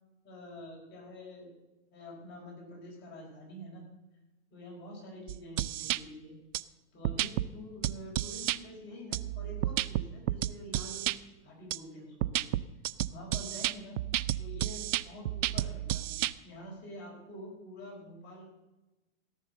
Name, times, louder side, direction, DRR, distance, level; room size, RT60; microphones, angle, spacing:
voice 1, 0.2-1.5 1.9-3.8 4.5-6.4 6.9-11.1 11.4-12.5 13.1-14.0 14.4-18.5, left 1 dB, 30° left, -2 dB, 4.9 m, -47 dB
sound 1, 5.3-6.0 6.5-6.6 7.0-7.5 7.8-8.6 9.1-11.2 11.7-11.8 12.2-16.3, right 14 dB, 75° right, 0.6 m, -31 dB
16.5 x 6.7 x 7.7 m, 1.1 s
hypercardioid pair, 145°, 38 cm